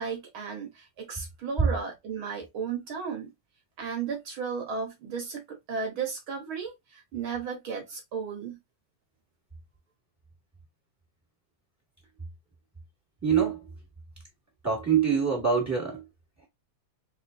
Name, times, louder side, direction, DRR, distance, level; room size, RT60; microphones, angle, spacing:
voice 1, 0.0-3.3 3.8-8.6, right 6 dB, 60° right, 1.4 m, -34 dB
voice 2, 13.2-13.6 14.6-16.0, right 7 dB, 10° right, 1.3 m, -24 dB
4.2 x 3.6 x 2.6 m
omnidirectional pair, 3.4 m